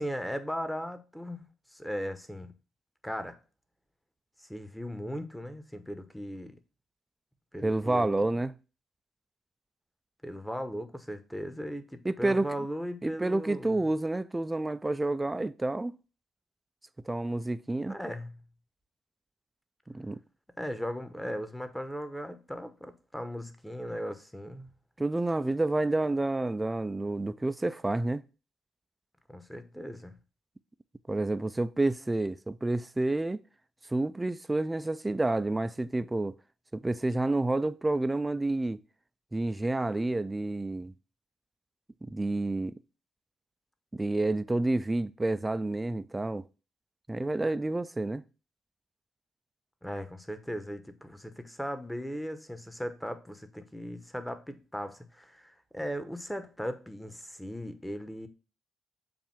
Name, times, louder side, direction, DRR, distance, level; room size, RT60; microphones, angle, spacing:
voice 1, 0.0-2.5 3.0-3.4 4.4-6.6 7.5-8.2 10.2-13.7 17.9-18.4 20.6-24.7 29.3-30.2 49.8-58.3, equal, 5° left, 1.0 m, -38 dB
voice 2, 7.6-8.6 12.0-12.5 13.0-16.0 17.0-18.0 19.9-20.2 25.0-28.2 31.1-33.4 33.9-36.4 36.7-38.8 39.3-40.9 42.0-42.8 43.9-46.5 47.1-48.2, right 2 dB, 20° right, 0.4 m, -29 dB
7.1 x 2.6 x 5.7 m
hypercardioid pair, 45°, 0 cm